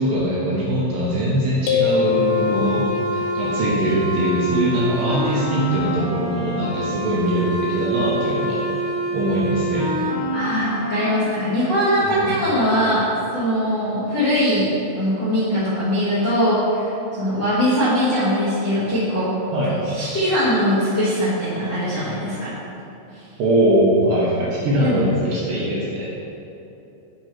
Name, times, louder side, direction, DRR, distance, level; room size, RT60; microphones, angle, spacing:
voice 1, 0.0-2.8 3.1-8.6 9.1-9.9 12.0-12.3 19.5-19.9 23.4-26.1, right 1 dB, 75° right, -6 dB, 2.0 m, -21 dB
sound 1, 1.7-3.2, left 7 dB, 90° left, 1.9 m, -22 dB
sound 2, 1.9-11.2, right 1 dB, 50° left, 1.8 m, -26 dB
voice 2, 10.3-14.7 15.0-19.3 19.8-22.5 23.1-23.2 24.8-25.0, equal, 70° left, -12 dB, 1.0 m, -21 dB
8.7 x 3.1 x 4.4 m, 2.9 s
omnidirectional pair, 4.6 m